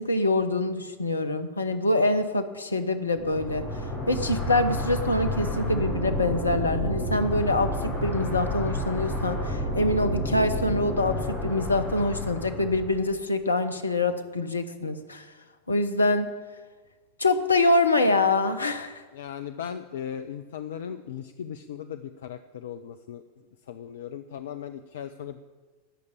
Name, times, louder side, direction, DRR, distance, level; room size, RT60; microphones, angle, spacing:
voice 1, 0.0-3.7 4.1-15.3 15.7-16.3 17.2-19.0, left 2 dB, 80° left, 10 dB, 1.0 m, -25 dB
sound 1, 3.2-13.0, left 1 dB, 40° left, 5.1 m, -30 dB
voice 2, 19.1-23.2 23.7-25.4, left 9 dB, 60° left, 10 dB, 0.6 m, -37 dB
18.0 x 6.6 x 8.6 m, 1.3 s
figure-of-eight pair, 85°, 0 cm